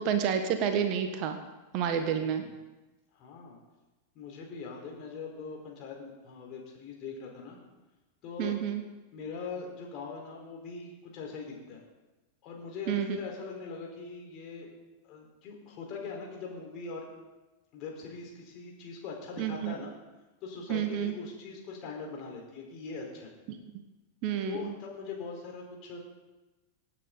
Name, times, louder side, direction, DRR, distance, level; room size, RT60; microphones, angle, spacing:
voice 1, 0.0-1.4 1.7-2.4 8.4-8.8 12.9-13.2 19.4-19.7 20.7-21.1 23.5-23.6 24.2-24.7, right 8 dB, 40° right, 8 dB, 1.3 m, -29 dB
voice 2, 2.2-2.5 3.2-3.6 4.1-7.6 8.2-8.5 9.1-11.8 12.4-14.7 15.0-17.1 17.7-19.9 20.4-23.3 24.5-26.0, left 4 dB, 40° left, 0 dB, 4.0 m, -41 dB
25.0 x 9.1 x 3.9 m, 1.1 s
figure-of-eight pair, 90°, 0 cm